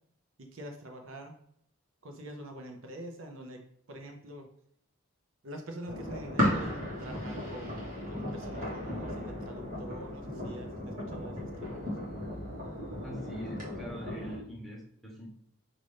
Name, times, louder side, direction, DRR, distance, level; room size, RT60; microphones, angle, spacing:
voice 1, 0.4-1.4 2.0-4.5 5.4-7.8 8.1-11.9, right 1 dB, 70° right, 4 dB, 0.7 m, -45 dB
sound 1, 5.9-14.4, left 1 dB, 40° right, 1.2 m, -35 dB
voice 2, 13.0-15.3, equal, ahead, -4 dB, 0.9 m, -43 dB
5.2 x 2.5 x 3.3 m, 0.68 s
head